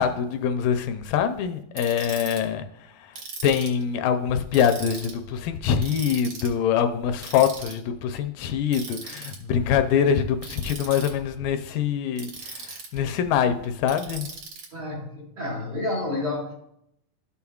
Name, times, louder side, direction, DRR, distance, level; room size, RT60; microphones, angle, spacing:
voice 1, 0.0-2.7 3.0-3.1 3.4-14.3, left 8 dB, 80° left, 8 dB, 2.1 m, -24 dB
Ratchet pawl, 1.8-2.4 3.1-3.8 4.5-5.1 5.8-6.5 7.2-7.7 8.7-9.4 10.4-11.1 12.2-13.0 13.9-14.7, right 4 dB, 55° right, 1.3 m, -38 dB
voice 2, 14.7-16.5, left 2 dB, 75° right, -2 dB, 0.9 m, -30 dB
12.5 x 7.0 x 2.3 m, 0.74 s
omnidirectional pair, 4.1 m